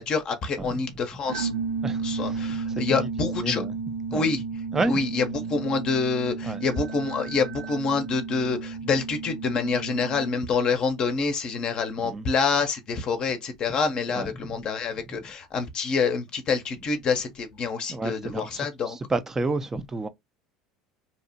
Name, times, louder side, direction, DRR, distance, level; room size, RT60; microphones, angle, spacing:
voice 1, 0.0-1.5 2.0-3.6 4.1-4.4 4.9-19.0, left 4 dB, 45° left, 0.6 m, -27 dB
sound 1, 1.3-10.5, right 5 dB, 85° right, 0.5 m, -33 dB
voice 2, 1.8-3.1 3.4-3.8 4.1-4.3 4.7-5.0 6.4-6.6 12.0-12.3 14.1-14.6 17.9-20.1, right 3 dB, 20° right, 0.4 m, -30 dB
2.8 x 2.0 x 2.6 m
hypercardioid pair, 80°, 2 cm